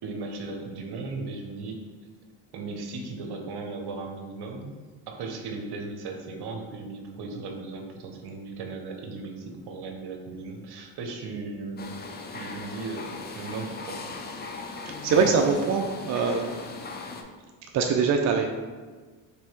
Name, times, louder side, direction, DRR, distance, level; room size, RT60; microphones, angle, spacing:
voice 1, 0.0-1.8 2.5-4.7 5.1-11.9 12.3-14.1, right 3 dB, 55° right, 3 dB, 0.9 m, -37 dB
sound 1, 11.8-17.2, left 3 dB, 25° left, 0.4 m, -38 dB
voice 2, 15.0-16.5 17.7-18.5, right 5 dB, 40° right, 3 dB, 0.4 m, -23 dB
3.4 x 3.0 x 4.3 m, 1.4 s
supercardioid pair, 75°, 46 cm